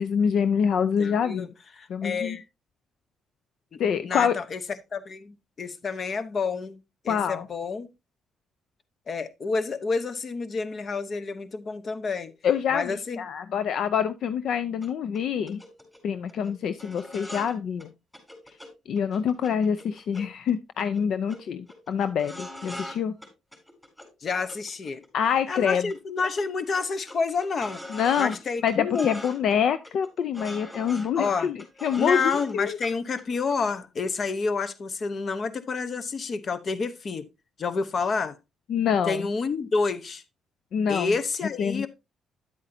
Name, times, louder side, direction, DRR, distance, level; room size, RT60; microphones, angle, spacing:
voice 1, 0.0-1.5 1.9-2.4 3.8-4.4 7.1-7.5 12.4-15.6 16.0-17.9 18.9-23.1 25.1-25.9 27.9-28.3 28.6-32.8 38.7-39.3 40.7-41.1 41.6-41.9, left 7 dB, 70° left, 0.5 m, -26 dB
voice 2, 1.0-1.5 1.8-2.4 3.7-4.6 4.9-6.8 7.0-7.9 9.1-12.3 12.7-13.2 24.2-25.0 25.5-27.8 28.2-29.1 31.2-31.5 32.0-37.3 37.6-38.4 39.1-40.2 40.9-41.9, left 4 dB, 45° left, 1.0 m, -29 dB
sound 1, 14.8-14.9 15.1-15.2 15.5-16.0 16.3-16.5 16.8-17.5 17.8-17.9 18.1-18.7 19.0-20.5 20.8-21.0 21.3-21.4 21.7-23.0 23.2-24.1 24.5-25.6 25.9-26.0 26.2-28.4 28.7-29.6 29.8-32.6 32.8-32.9 33.2-33.8 34.0-34.1, left 1 dB, 10° left, 3.9 m, -42 dB
10.0 x 8.2 x 2.7 m
cardioid pair, 90°, 0 cm